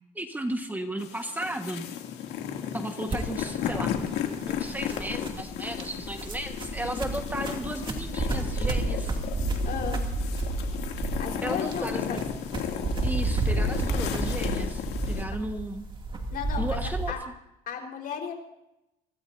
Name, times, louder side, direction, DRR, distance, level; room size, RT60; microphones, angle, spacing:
voice 1, 0.1-1.9 2.7-4.0 4.5-9.2 11.4-12.2 13.0-15.8 16.6-17.1, right 1 dB, 10° right, 5 dB, 1.5 m, -34 dB
sound 1, 1.0-15.2, left 9 dB, 85° left, 2.6 m, -34 dB
sound 2, 3.1-17.1, right 2 dB, 30° right, 2.5 m, -31 dB
voice 2, 9.6-10.0 11.2-12.2 16.3-17.2 17.7-18.3, left 7 dB, 60° left, 2 dB, 4.3 m, -34 dB
25.0 x 17.0 x 2.7 m, 0.87 s
cardioid pair, 110°, 17 cm